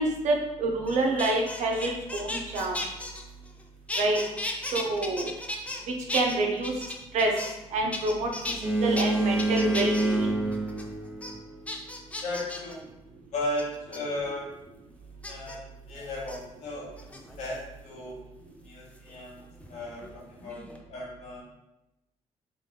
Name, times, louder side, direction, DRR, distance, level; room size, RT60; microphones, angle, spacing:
voice 1, 0.0-2.8 4.0-4.2 4.7-5.3 6.1-6.7 7.1-7.3 7.7-8.5 8.8-10.3, right 2 dB, 85° right, 1 dB, 0.9 m, -27 dB
sound 1, 0.9-3.6 3.9-5.8 6.1-7.6 7.9-8.6 9.0-9.1 9.4-10.1 10.5-10.8 11.2-11.3 11.7-12.7 13.6-14.0 15.2-15.6 16.2-16.4 17.0-17.5 19.0-20.1 20.4-20.8, left 2 dB, 10° left, 0.5 m, -35 dB
Boat Water vehicle, 8.6-11.7, right 2 dB, 15° right, 1.2 m, -27 dB
voice 2, 12.2-12.8 13.3-14.5 15.3-17.1 17.4-18.2 18.6-21.4, left 1 dB, 85° left, -4 dB, 1.6 m, -36 dB
4.0 x 3.4 x 3.8 m, 0.94 s
cardioid pair, 145°, 12 cm